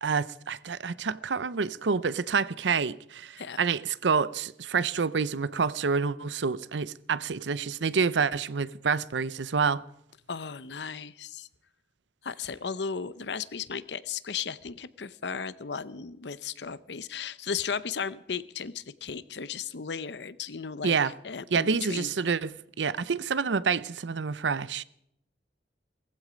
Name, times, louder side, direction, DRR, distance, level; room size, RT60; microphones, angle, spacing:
voice 1, 0.0-9.8 20.8-21.1 21.5-22.5 22.8-24.8, right 5 dB, 80° right, 0.6 m, -28 dB
voice 2, 10.3-11.5 12.2-22.1, left 6 dB, 70° left, 0.7 m, -35 dB
18.5 x 15.0 x 5.1 m
head